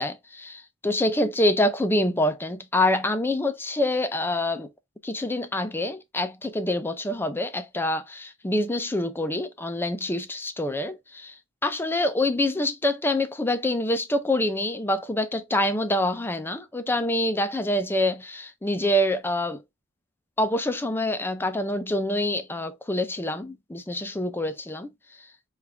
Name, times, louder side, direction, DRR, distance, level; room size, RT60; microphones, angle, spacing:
voice 1, 0.0-4.7 5.0-11.3 11.6-19.6 20.4-24.9 25.2-25.3, left 1 dB, 10° left, 0.4 m, -26 dB
4.8 x 2.4 x 3.2 m
head